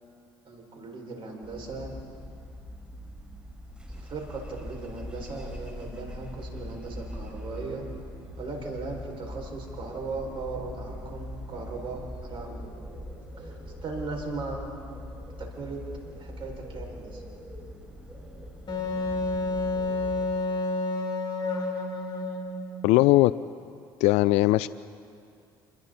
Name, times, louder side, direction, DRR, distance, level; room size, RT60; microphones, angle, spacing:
voice 1, 0.4-1.9 3.9-7.8 8.4-12.7 13.4-15.0 15.4-15.8 16.2-17.2, right 3 dB, 50° right, 0 dB, 6.3 m, -38 dB
sound 1, 1.4-20.3, equal, 10° right, 5.2 m, -42 dB
Wind instrument woodwind instrument, 18.7-22.8, left 2 dB, 40° left, 4.6 m, -29 dB
voice 2, 22.8-23.3 24.0-24.7, left 18 dB, 70° left, 17 dB, 0.4 m, -19 dB
28.5 x 21.5 x 4.3 m, 2.4 s
hypercardioid pair, 65°, 12 cm